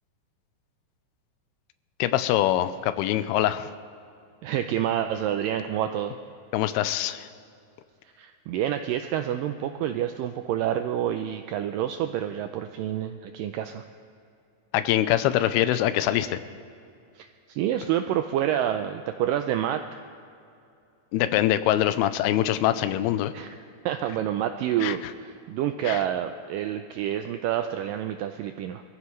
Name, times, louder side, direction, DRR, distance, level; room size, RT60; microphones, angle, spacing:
voice 1, 2.0-3.7 6.5-7.3 14.7-16.4 21.1-23.3 24.8-24.9 25.9-26.0, left 13 dB, 85° left, 12 dB, 2.6 m, -24 dB
voice 2, 4.4-6.2 8.2-13.8 17.2-20.0 23.3-23.6 23.9-28.8, right 11 dB, 85° right, 7 dB, 2.0 m, -28 dB
24.0 x 15.0 x 3.2 m, 2.5 s
omnidirectional pair, 4.4 m